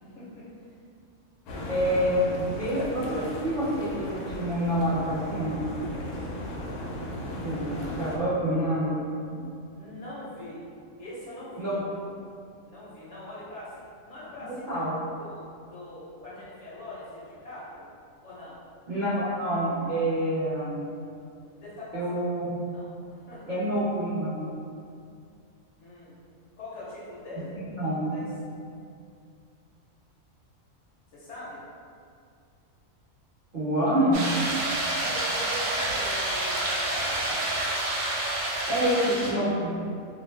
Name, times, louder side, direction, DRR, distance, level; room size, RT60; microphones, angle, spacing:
voice 1, 0.0-0.5 9.7-10.7 11.0-11.7 12.6-14.8 15.2-17.9 18.2-18.6 21.6-22.1 22.7-23.6 25.8-26.1 26.6-27.5 28.1-28.2 31.1-31.6 35.0-37.6, left 1 dB, 60° left, -8 dB, 0.9 m, -42 dB
sound 1, 1.5-8.2, left 1 dB, 90° left, 1.0 m, -36 dB
voice 2, 1.7-5.7 7.4-9.5 11.6-11.8 14.7-14.9 18.9-20.8 21.9-22.6 23.5-24.5 27.7-28.1 33.5-34.5 38.7-39.9, right 1 dB, 45° right, -12 dB, 0.6 m, -27 dB
sound 2, 34.1-39.3, right 1 dB, 70° right, 0.9 m, -28 dB
2.5 x 2.1 x 3.2 m, 2.4 s
omnidirectional pair, 1.5 m